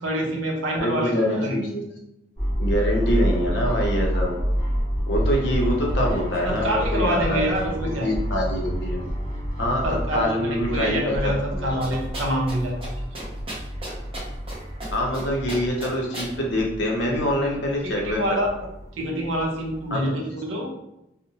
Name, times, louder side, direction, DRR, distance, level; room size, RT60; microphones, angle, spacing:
voice 1, 0.0-1.6 6.4-8.1 9.8-12.7 17.8-18.5 18.9-20.7, right 1 dB, 85° right, 0 dB, 0.6 m, -26 dB
voice 2, 0.8-1.8 2.6-4.4 5.1-7.7 8.0-9.0 9.6-9.8 10.1-11.7 14.9-18.4 19.9-20.2, equal, 65° left, -1 dB, 0.6 m, -25 dB
sound 1, 2.4-19.9, equal, 15° left, 0.6 m, -29 dB
sound 2, 11.8-12.6 12.8-12.9 13.1-14.5 14.8-15.2 15.5-16.3, right 1 dB, 30° right, 0.6 m, -34 dB
2.7 x 2.0 x 2.7 m, 0.86 s
head